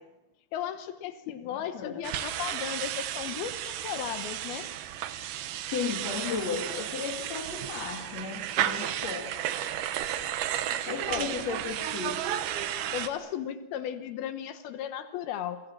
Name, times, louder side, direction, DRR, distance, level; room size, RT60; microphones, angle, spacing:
voice 1, 0.5-4.7 6.3-6.6 11.1-11.3 12.9-15.6, left 10 dB, 80° left, 10 dB, 2.9 m, -35 dB
voice 2, 1.4-2.0 5.7-9.3 10.9-12.2, left 5 dB, 50° left, 4 dB, 3.0 m, -35 dB
sound 1, 2.0-13.1, right 11 dB, 80° right, 3.1 m, -33 dB
30.0 x 23.5 x 7.5 m, 0.99 s
omnidirectional pair, 4.4 m